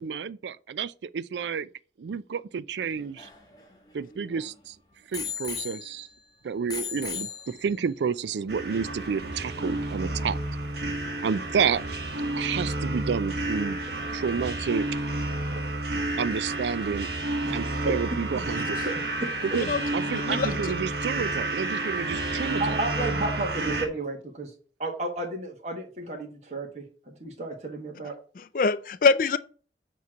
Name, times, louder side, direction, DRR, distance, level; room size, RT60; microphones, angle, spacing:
voice 1, 0.0-1.7 2.0-3.3 3.9-4.8 5.1-6.1 6.4-10.4 11.2-11.8 12.4-13.8 14.1-14.9 16.2-17.1 17.5-18.8 19.5-22.8, right 6 dB, 80° right, 0.4 m, -30 dB
Bicycle bell, 2.8-4.5 5.1-6.3 6.7-8.0 8.7-8.8, left 7 dB, 25° left, 1.1 m, -37 dB
sound 1, 8.5-23.9, right 2 dB, 65° right, 1.3 m, -30 dB
voice 2, 17.4-18.0 18.8-19.6 21.9-22.0 22.6-24.5 24.8-28.2, right 2 dB, 40° right, 1.3 m, -33 dB
voice 3, 20.1-20.7 28.4-29.4, left 4 dB, 50° left, 0.4 m, -24 dB
8.3 x 3.1 x 6.1 m
head